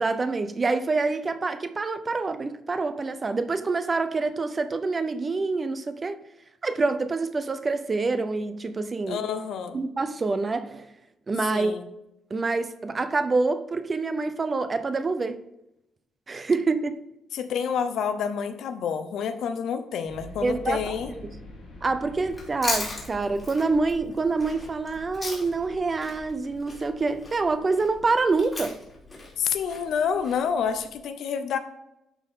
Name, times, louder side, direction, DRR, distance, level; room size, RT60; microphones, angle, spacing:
voice 1, 0.0-6.2 6.6-9.2 9.7-10.9 11.3-11.7 12.3-15.4 16.3-17.0 20.4-21.2 21.8-28.8, right 3 dB, 25° right, 0.6 m, -26 dB
voice 2, 9.1-9.8 11.5-11.9 17.3-21.1 29.4-31.6, left 7 dB, 70° left, 0.8 m, -28 dB
sound 1, 20.0-31.0, left 2 dB, 55° left, 2.6 m, -47 dB
Chewing mastication, 22.3-25.7 26.0-30.4, left 2 dB, 20° left, 3.1 m, -36 dB
11.5 x 4.3 x 3.7 m
cardioid pair, 125°, 0 cm